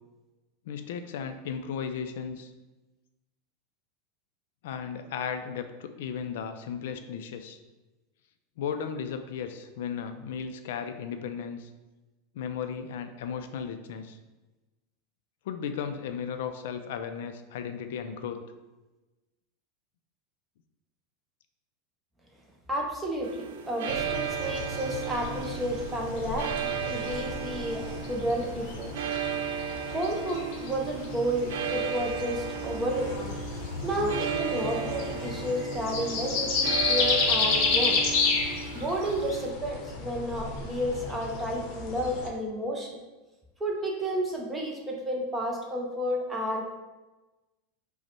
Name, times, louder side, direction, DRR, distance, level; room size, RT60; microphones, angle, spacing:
voice 1, 0.7-2.5 4.6-7.6 8.6-11.7 12.3-14.2 15.5-18.4, left 7 dB, 65° left, 8 dB, 0.3 m, -35 dB
voice 2, 22.7-28.9 29.8-33.1 33.8-38.0 38.7-43.0 43.6-46.6, equal, 10° right, -1 dB, 0.5 m, -31 dB
sound 1, 23.2-39.5, right 8 dB, 65° right, 0.4 m, -35 dB
sound 2, 23.9-42.3, left 4 dB, 40° left, 0.7 m, -32 dB
5.1 x 2.1 x 4.3 m, 1.1 s
supercardioid pair, 175°, 0 cm